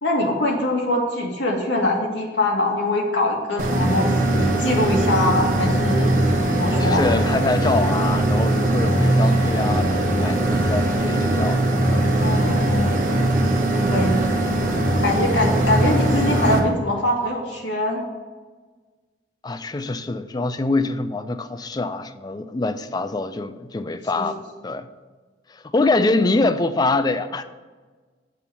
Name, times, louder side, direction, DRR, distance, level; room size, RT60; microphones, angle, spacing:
voice 1, 0.0-6.2 6.6-7.0 12.1-12.9 13.9-14.5 15.0-18.0 24.2-24.3, left 1 dB, 85° left, 1.9 m, -23 dB
sound 1, 3.6-16.6, right 1 dB, 50° right, 1.1 m, -20 dB
voice 2, 6.8-11.6 11.9-12.1 19.4-24.9 25.5-27.4, left 2 dB, 25° left, 0.4 m, -24 dB
6.9 x 4.5 x 6.9 m
head